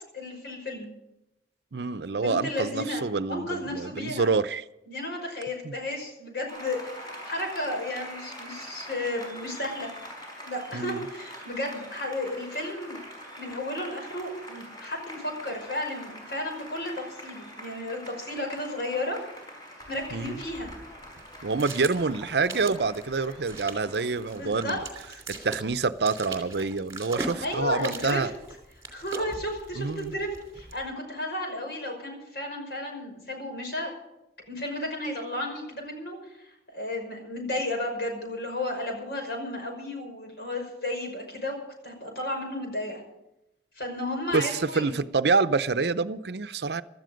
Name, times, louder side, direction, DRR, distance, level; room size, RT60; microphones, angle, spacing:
voice 1, 0.1-0.9 2.2-3.0 3.3-4.3 4.9-9.9 10.4-13.0 13.4-19.2 19.9-20.7 24.1-24.8 25.1-25.2 27.4-28.2 28.9-30.3 30.5-33.9 34.5-43.0 43.8-45.1, left 1 dB, 65° left, 2 dB, 5.7 m, -33 dB
voice 2, 1.7-4.6 5.6-5.7 10.7-11.1 20.1-20.4 21.4-24.8 25.3-28.3 29.8-30.2 44.3-46.8, right 4 dB, 70° right, 13 dB, 0.6 m, -27 dB
Applause, 6.5-24.8, equal, 20° left, 5.1 m, -44 dB
sound 1, 19.8-30.9, right 3 dB, 15° right, 2.8 m, -41 dB
17.0 x 13.0 x 5.2 m, 0.88 s
head